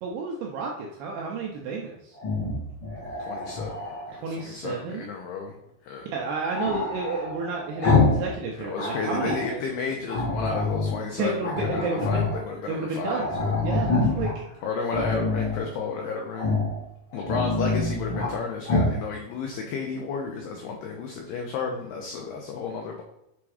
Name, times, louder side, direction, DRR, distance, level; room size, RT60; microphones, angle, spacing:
voice 1, 0.0-2.2 4.1-5.1 6.1-9.6 11.2-12.1 12.7-13.3 13.6-14.5, right 4 dB, 80° right, -1 dB, 2.3 m, -31 dB
Growling, 2.1-4.2 6.5-8.3 8.6-9.5 10.1-11.0 11.4-12.4 12.7-12.8 13.0-14.3 14.8-15.6 16.3-16.8 17.1-18.3 18.6-19.0, left 3 dB, 55° left, 1.2 m, -26 dB
voice 2, 3.2-3.9 4.2-5.5 5.8-6.1 8.6-13.6 14.6-16.5 17.1-23.0, left 5 dB, 90° left, 1 dB, 2.2 m, -32 dB
7.4 x 3.6 x 4.8 m, 0.84 s
omnidirectional pair, 5.5 m